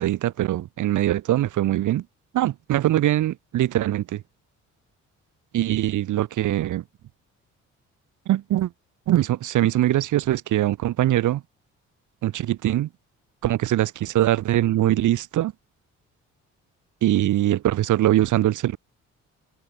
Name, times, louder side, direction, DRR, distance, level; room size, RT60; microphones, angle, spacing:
voice 1, 0.0-2.0 2.3-4.2 5.5-6.8 8.3-8.7 9.1-11.4 12.2-12.9 13.4-15.5 17.0-18.8, right 13 dB, 80° right, 3.6 m, -22 dB
cardioid pair, 90°, 30 cm